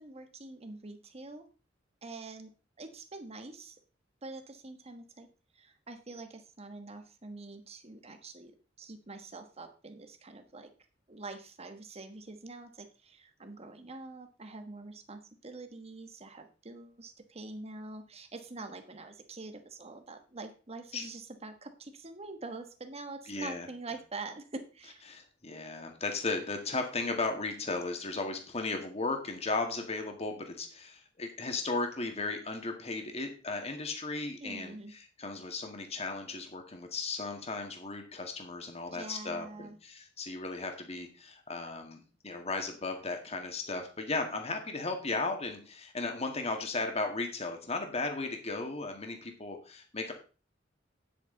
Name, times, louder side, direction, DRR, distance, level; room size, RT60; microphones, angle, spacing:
voice 1, 0.0-1.4 2.0-2.5 2.8-3.8 4.2-5.3 5.5-8.5 8.8-10.7 11.1-25.0 34.4-34.9 38.9-39.8, right 3 dB, 35° right, 7 dB, 1.3 m, -45 dB
voice 2, 23.3-23.7 25.1-50.1, left 3 dB, 35° left, 4 dB, 1.9 m, -36 dB
9.4 x 8.2 x 3.9 m, 0.35 s
head